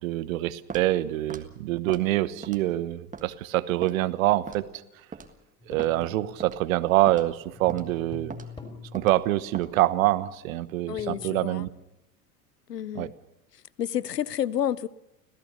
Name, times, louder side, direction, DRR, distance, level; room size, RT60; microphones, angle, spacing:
voice 1, 0.0-4.7 5.7-8.3 8.9-11.7 12.9-13.1, right 16 dB, 60° right, 16 dB, 1.1 m, -25 dB
Walk footsteps, 0.7-0.9 1.3-1.5 1.9-2.1 2.4-2.7 3.1-3.3 3.8-4.0 4.5-4.7 5.1-5.3 5.8-5.9 6.4-6.6 7.1-7.3 7.7-7.9 8.3-8.5 9.0-9.2 9.5-9.7, right 5 dB, 15° right, 1.6 m, -40 dB
sound 1, 5.6-6.9 7.4-9.6 11.0-11.4, left 3 dB, 10° left, 3.9 m, -45 dB
voice 2, 10.9-11.7 12.7-13.1 13.8-14.9, left 10 dB, 85° left, 23 dB, 0.7 m, -29 dB
26.0 x 16.5 x 6.8 m, 0.91 s
figure-of-eight pair, 80°, 47 cm